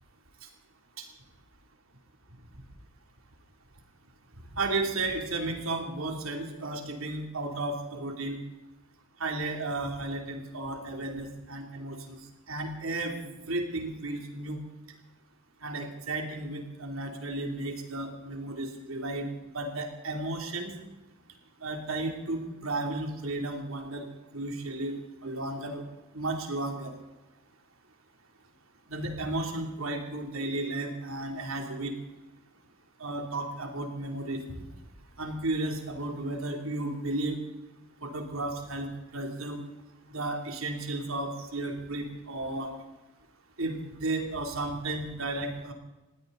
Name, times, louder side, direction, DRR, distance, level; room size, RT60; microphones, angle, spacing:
voice 1, 4.6-8.4 9.2-12.2 12.5-14.6 15.6-19.3 19.5-20.8 21.6-24.1 24.3-25.0 25.2-25.8 26.1-26.9 28.9-31.9 33.0-34.6 35.2-37.4 38.0-38.9 39.1-39.6 40.1-42.7 43.6-43.7 44.0-45.7, right 2 dB, 85° right, 3 dB, 3.0 m, -33 dB
20.5 x 16.0 x 4.0 m, 1.0 s
head